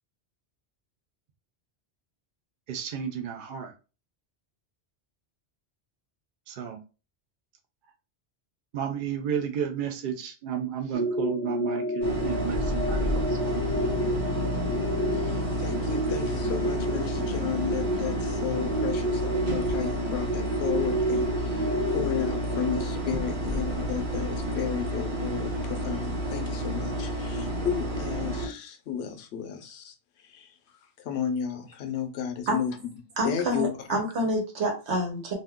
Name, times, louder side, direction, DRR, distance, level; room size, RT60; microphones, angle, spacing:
voice 1, 2.7-3.7 6.5-6.8 8.7-13.6, right 8 dB, 60° right, 0.6 m, -32 dB
sound 1, 10.9-22.8, equal, 25° left, 0.4 m, -30 dB
sound 2, 12.0-28.5, equal, 45° right, 1.3 m, -30 dB
voice 2, 15.1-29.9 30.2-30.5 31.0-32.8 33.2-34.0, left 8 dB, 80° left, 0.9 m, -33 dB
voice 3, 33.2-35.3, right 1 dB, 85° right, 1.3 m, -27 dB
2.7 x 2.2 x 3.5 m
omnidirectional pair, 1.1 m